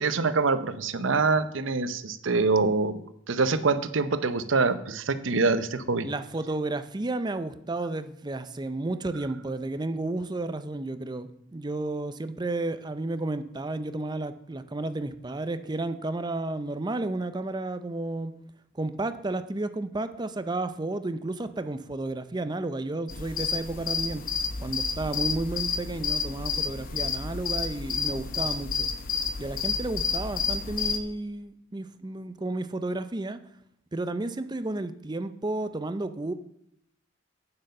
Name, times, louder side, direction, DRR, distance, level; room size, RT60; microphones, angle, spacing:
voice 1, 0.0-3.0 3.3-6.1, right 4 dB, 75° right, 13 dB, 0.7 m, -25 dB
voice 2, 6.0-18.3 18.7-24.2 24.6-28.9 29.4-33.4 33.9-36.3, right 2 dB, 20° right, 11 dB, 0.5 m, -32 dB
sound 1, 23.1-31.0, left 5 dB, 45° left, 0.8 m, -30 dB
9.0 x 7.7 x 5.4 m, 0.75 s
head